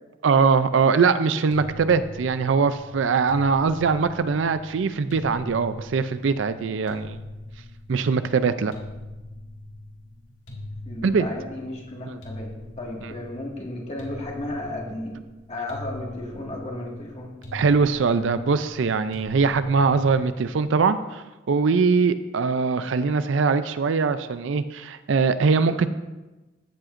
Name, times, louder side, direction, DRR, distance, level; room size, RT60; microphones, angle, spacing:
voice 1, 0.2-7.2 7.9-8.7 11.0-11.2 12.1-12.2 13.0-13.1 17.5-25.9, right 5 dB, 65° right, 12 dB, 0.4 m, -22 dB
sound 1, 1.5-20.8, left 1 dB, 75° left, 1.9 m, -42 dB
voice 2, 10.9-15.2 15.5-17.3, left 1 dB, 35° left, -1 dB, 1.9 m, -34 dB
14.5 x 7.8 x 2.5 m, 1.1 s
head